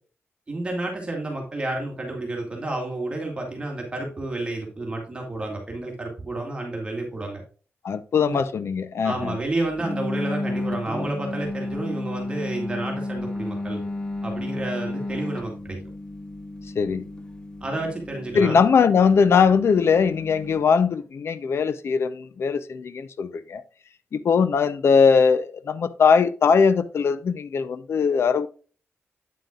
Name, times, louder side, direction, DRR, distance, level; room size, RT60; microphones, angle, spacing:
voice 1, 0.5-7.4 8.3-8.4 9.0-13.8 14.2-15.8 17.6-18.6, right 2 dB, 20° right, 2.1 m, -30 dB
voice 2, 7.8-9.4 16.8-17.0 18.3-23.6 24.1-28.5, left 6 dB, 65° left, 0.6 m, -20 dB
sound 1, 9.8-20.6, left 2 dB, 20° left, 0.8 m, -33 dB
8.6 x 7.7 x 2.4 m
wide cardioid pair, 125°, 5 cm